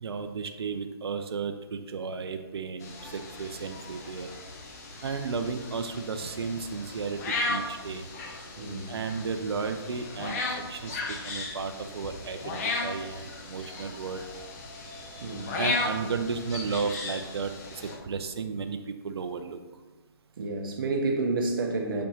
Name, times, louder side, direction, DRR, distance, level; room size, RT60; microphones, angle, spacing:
voice 1, 0.0-4.3 5.0-8.1 8.9-14.3 15.6-19.6, right 5 dB, 75° right, 7 dB, 0.6 m, -34 dB
sound 1, 2.8-18.0, left 2 dB, 40° left, 1.1 m, -36 dB
voice 2, 8.6-8.9 15.2-15.5 16.0-16.1 20.4-22.1, right 3 dB, 55° right, 1 dB, 1.2 m, -29 dB
7.6 x 5.2 x 2.9 m, 1.2 s
hypercardioid pair, 150°, 13 cm